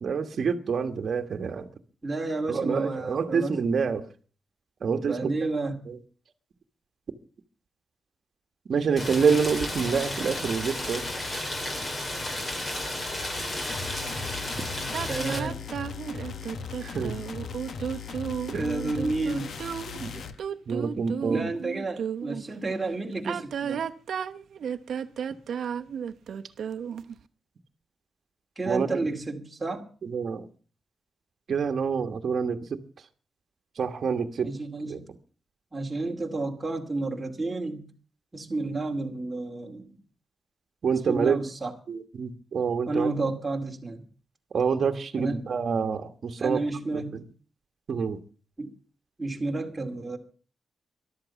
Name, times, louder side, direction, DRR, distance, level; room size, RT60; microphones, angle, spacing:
voice 1, 0.0-1.7 2.5-4.1 4.8-5.3 5.9-6.0 8.7-11.0 16.8-17.2 18.5-18.7 20.0-20.1 20.7-21.5 28.6-29.2 30.0-30.5 31.5-32.8 33.7-34.5 34.9-35.0 40.8-41.4 41.9-43.1 44.5-46.6 46.9-47.2 47.9-48.2, right 6 dB, 50° right, 8 dB, 1.4 m, -27 dB
voice 2, 2.0-3.7 5.1-5.8 15.1-15.6 18.6-19.5 21.3-23.8 28.6-29.9 34.4-35.0 35.7-37.9 38.3-40.0 41.1-41.7 42.9-44.0 45.2-45.4 46.4-47.3 48.6-48.7 49.2-50.2, right 3 dB, 15° right, 2 dB, 2.4 m, -31 dB
Rain, 9.0-15.4, left 1 dB, 25° left, 2.8 m, -33 dB
sound 1, 13.7-20.4, left 6 dB, 60° left, 1.4 m, -38 dB
sound 2, 14.9-22.4 23.1-27.2, right 8 dB, 65° right, 0.8 m, -33 dB
13.5 x 12.0 x 7.1 m, 0.40 s
wide cardioid pair, 150°, 0 cm